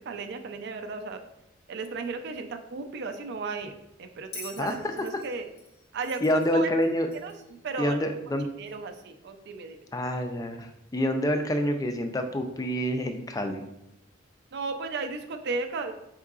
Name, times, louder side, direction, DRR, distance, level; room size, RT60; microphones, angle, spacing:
voice 1, 0.1-1.2 1.7-3.7 4.0-5.5 5.9-6.2 6.5-6.7 7.2-7.3 7.6-8.0 8.6-9.8 14.5-15.9, right 4 dB, 55° right, 7 dB, 0.4 m, -34 dB
Bell, 4.3-7.5 8.7-8.8, left 4 dB, 55° left, 0.7 m, -46 dB
voice 2, 4.6-5.1 6.2-7.1 7.8-8.5 9.9-13.6, equal, 20° left, 6 dB, 0.3 m, -27 dB
4.6 x 3.7 x 2.4 m, 0.85 s
head